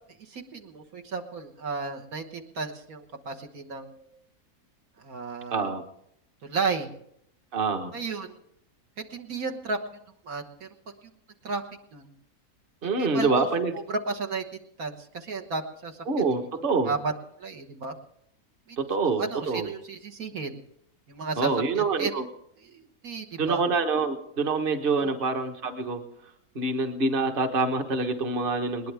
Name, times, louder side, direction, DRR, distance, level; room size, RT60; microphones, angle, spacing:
voice 1, 0.2-4.1 5.0-5.7 6.4-6.9 7.9-8.4 9.1-9.8 10.2-10.7 11.4-11.6 11.9-12.1 13.0-13.5 13.9-14.4 14.8-16.0 16.9-17.1 17.4-17.9 18.7-18.8 19.0-20.6 21.1-22.2 22.6-23.6 24.8-25.1, right 4 dB, 70° right, 3 dB, 1.8 m, -33 dB
voice 2, 5.5-5.8 7.5-7.9 12.8-13.7 16.1-16.9 18.8-19.7 21.4-22.2 23.4-26.0 26.5-28.9, right 3 dB, 40° right, 6 dB, 1.4 m, -26 dB
20.5 x 19.5 x 3.5 m, 0.72 s
omnidirectional pair, 1.6 m